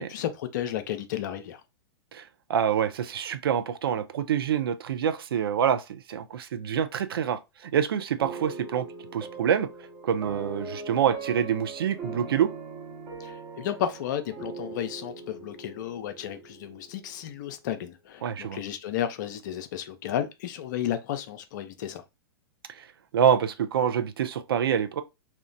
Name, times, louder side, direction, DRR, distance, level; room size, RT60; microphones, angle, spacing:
voice 1, 0.0-1.6 13.2-22.0, left 10 dB, 45° left, 0.4 m, -33 dB
voice 2, 2.1-8.9 9.1-12.5 18.2-18.6 22.7-25.0, right 8 dB, 60° right, 0.4 m, -26 dB
sound 1, 8.2-17.4, right 4 dB, 30° right, 0.9 m, -41 dB
2.8 x 2.1 x 2.5 m
figure-of-eight pair, 105°, 14 cm